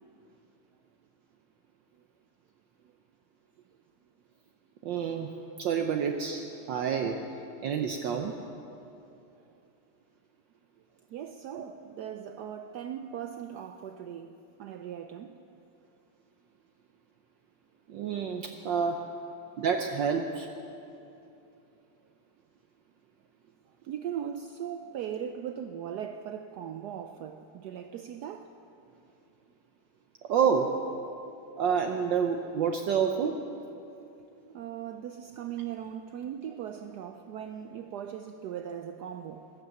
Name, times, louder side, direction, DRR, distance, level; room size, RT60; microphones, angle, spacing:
voice 1, 4.8-5.3 5.6-7.2 7.6-8.3 11.5-11.7 17.9-19.1 19.6-20.5 30.3-30.8 31.6-33.4, right 7 dB, 65° right, 1.3 m, -28 dB
voice 2, 11.1-15.6 23.8-28.6 34.5-39.5, right 9 dB, 90° right, 0.9 m, -39 dB
15.0 x 12.5 x 7.8 m
omnidirectional pair, 2.3 m